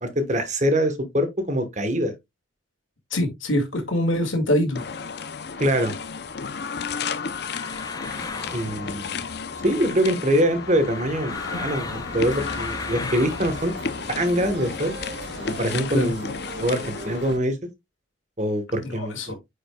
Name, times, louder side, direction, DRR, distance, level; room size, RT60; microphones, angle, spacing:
voice 1, 0.0-2.1 5.6-5.9 8.5-9.2 9.6-13.7 14.1-14.9 15.4-17.6 18.4-19.3, equal, 35° right, 1.2 m, -24 dB
voice 2, 3.1-4.8 15.9-16.1 18.8-19.3, left 1 dB, 80° left, 2.0 m, -24 dB
sound 1, 4.7-17.3, left 5 dB, 55° left, 0.6 m, -33 dB
sound 2, 4.9-16.0, left 3 dB, 20° left, 0.6 m, -39 dB
sound 3, 11.3-17.4, right 1 dB, 60° right, 1.7 m, -40 dB
9.2 x 5.0 x 2.3 m
head